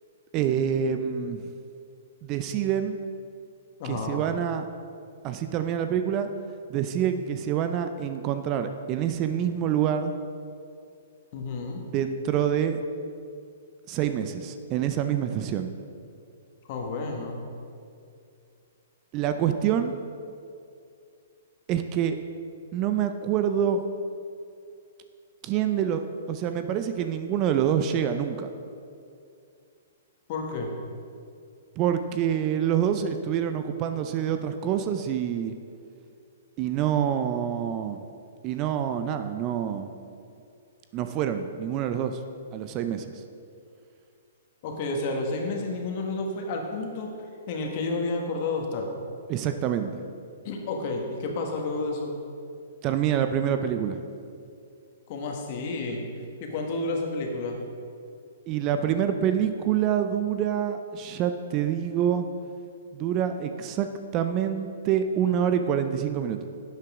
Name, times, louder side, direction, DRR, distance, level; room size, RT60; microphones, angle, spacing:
voice 1, 0.3-1.4 2.2-3.0 3.8-4.7 5.2-6.3 6.7-10.1 11.9-12.8 13.9-15.7 19.1-20.0 21.7-22.2 22.7-23.8 25.4-26.0 26.3-28.5 31.8-35.5 36.6-38.0 38.4-39.9 40.9-42.2 42.5-43.1 49.3-50.0 52.8-54.0 58.5-62.3 62.9-63.9 64.1-66.5, right 9 dB, 35° right, 8 dB, 0.5 m, -26 dB
voice 2, 3.8-4.2 11.3-11.8 16.7-17.4 30.3-30.7 44.6-47.1 47.5-48.9 50.4-52.1 55.1-56.0 56.4-57.6, left 3 dB, 45° left, 1 dB, 1.7 m, -30 dB
11.5 x 7.9 x 3.7 m, 2.4 s
hypercardioid pair, 125°, 0 cm